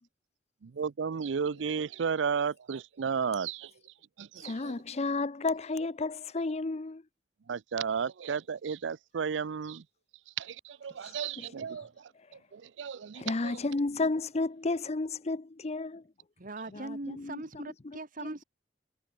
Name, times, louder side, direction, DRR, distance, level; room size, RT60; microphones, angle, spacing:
voice 1, 0.6-3.7 4.2-4.7 7.5-9.8 10.4-12.1 12.5-13.6, right 6 dB, 80° right, 0.5 m, -33 dB
voice 2, 4.4-7.0 11.4-11.5 13.1-16.0 16.7-17.4, left 3 dB, 35° left, 0.7 m, -32 dB
voice 3, 16.4-18.4, right 2 dB, 50° right, 1.8 m, -40 dB
head